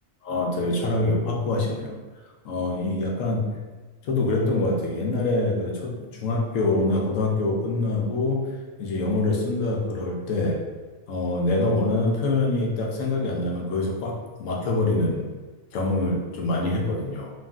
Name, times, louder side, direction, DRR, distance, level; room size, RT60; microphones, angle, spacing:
voice 1, 0.2-2.0 2.4-3.5 4.0-10.6 11.1-15.3 15.7-17.3, left 2 dB, 75° left, -1 dB, 0.9 m, -25 dB
3.0 x 2.5 x 2.3 m, 1.3 s
omnidirectional pair, 1.4 m